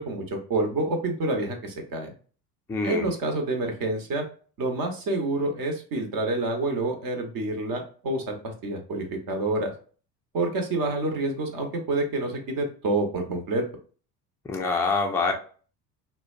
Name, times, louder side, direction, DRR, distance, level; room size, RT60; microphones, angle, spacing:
voice 1, 0.0-2.1 2.8-4.2 4.6-9.7 10.3-13.6, right 2 dB, 45° right, 4 dB, 0.9 m, -28 dB
voice 2, 2.7-3.1 14.4-15.3, left 4 dB, 5° left, 2 dB, 0.3 m, -25 dB
2.6 x 2.1 x 2.4 m, 0.40 s
hypercardioid pair, 75°, 48 cm